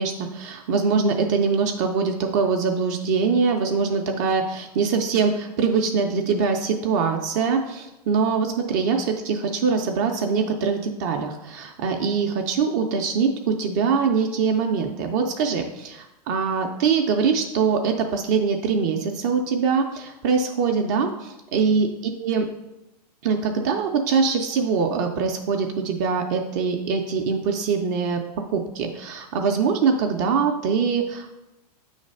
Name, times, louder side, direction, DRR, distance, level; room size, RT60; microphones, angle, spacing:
voice 1, 0.0-21.9 22.2-22.4 23.2-28.2 28.5-31.3, right 5 dB, 30° right, 2 dB, 0.4 m, -23 dB
7.9 x 3.2 x 5.3 m, 0.94 s
supercardioid pair, 165°, 20 cm